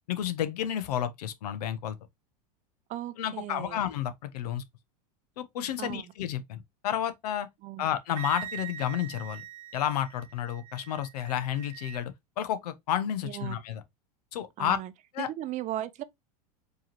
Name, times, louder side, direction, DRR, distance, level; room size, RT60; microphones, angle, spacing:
voice 1, 0.1-2.0 3.2-4.6 5.4-7.5 7.8-9.4 9.7-13.8 14.3-14.8 15.1-15.3, left 10 dB, 75° left, 0.8 m, -31 dB
voice 2, 2.9-3.8 5.8-6.1 7.6-7.9 13.2-13.6 14.6-14.9 15.2-16.0, right 13 dB, 40° right, 0.5 m, -37 dB
Wind instrument woodwind instrument, 8.2-12.0, right 11 dB, 70° right, 0.8 m, -43 dB
4.6 x 3.1 x 2.9 m
hypercardioid pair, 110°, 20 cm